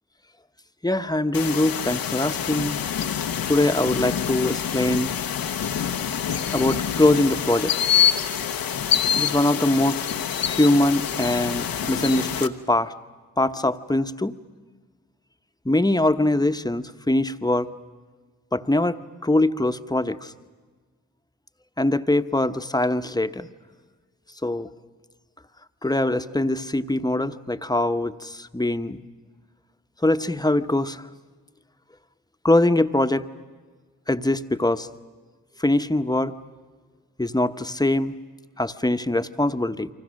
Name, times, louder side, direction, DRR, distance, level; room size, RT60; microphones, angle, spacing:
voice 1, 0.8-2.8 3.5-5.1 6.5-7.7 9.2-10.0 10.4-12.9 13.4-14.3 15.6-17.7 18.5-20.3 21.8-23.5 24.4-24.7 25.8-29.0 30.0-31.1 32.4-33.3 34.1-34.9 35.6-36.4 37.2-38.1 38.6-39.9, left 1 dB, 10° left, 9 dB, 1.0 m, -22 dB
sound 1, 1.3-12.5, left 8 dB, 75° left, 1.0 m, -26 dB
29.0 x 24.5 x 6.4 m, 1.4 s
supercardioid pair, 40°, 35 cm